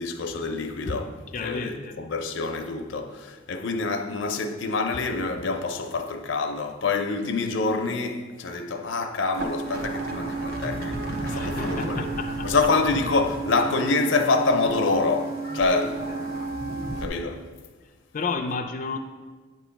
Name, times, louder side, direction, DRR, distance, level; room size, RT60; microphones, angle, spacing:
voice 1, 0.0-12.1 12.4-16.0 17.0-17.4, left 3 dB, 80° left, 0.6 m, -26 dB
voice 2, 1.3-2.0 11.3-12.5 16.1-16.3 18.1-19.0, left 4 dB, 45° left, 0.4 m, -32 dB
sound 1, 9.3-17.0, right 3 dB, 55° right, 0.9 m, -31 dB
9.1 x 3.0 x 5.7 m
head